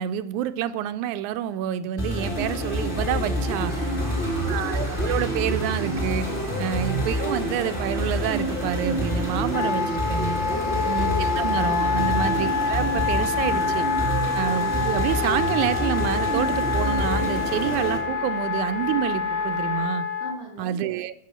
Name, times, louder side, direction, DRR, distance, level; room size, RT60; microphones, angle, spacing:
voice 1, 0.0-3.7 4.5-6.3 6.6-10.4 10.9-13.9 14.3-20.1 20.6-21.1, right 10 dB, 85° right, 11 dB, 2.0 m, -28 dB
sound 1, 2.0-18.0, equal, 20° left, 1.5 m, -27 dB
sound 2, 3.5-19.9, right 5 dB, 65° right, 1.2 m, -42 dB
voice 2, 3.7-4.5 6.5-6.8 10.4-11.0 11.9-12.1 20.2-20.8, left 3 dB, 50° left, -1 dB, 3.3 m, -39 dB
Wind instrument woodwind instrument, 9.5-20.3, left 5 dB, 75° left, 2.5 m, -27 dB
10.5 x 5.5 x 6.8 m, 0.72 s
omnidirectional pair, 3.4 m